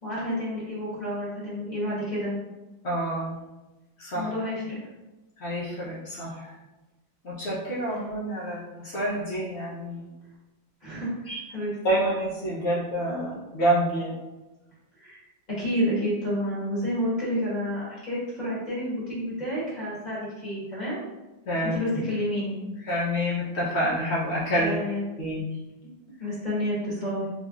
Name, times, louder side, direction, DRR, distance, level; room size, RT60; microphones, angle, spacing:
voice 1, 0.0-2.3 4.1-4.8 10.8-12.0 15.0-15.2 15.5-21.0 21.6-22.6 24.6-25.0 26.2-27.3, equal, 25° left, -8 dB, 1.2 m, -30 dB
voice 2, 2.8-3.5 4.0-4.3 5.4-6.5 7.2-10.1 11.3-11.4 11.8-14.1 21.5-21.8 22.8-24.8 25.2-25.4, right 1 dB, 75° left, -7 dB, 0.6 m, -28 dB
3.4 x 3.1 x 2.4 m, 1.1 s
omnidirectional pair, 2.1 m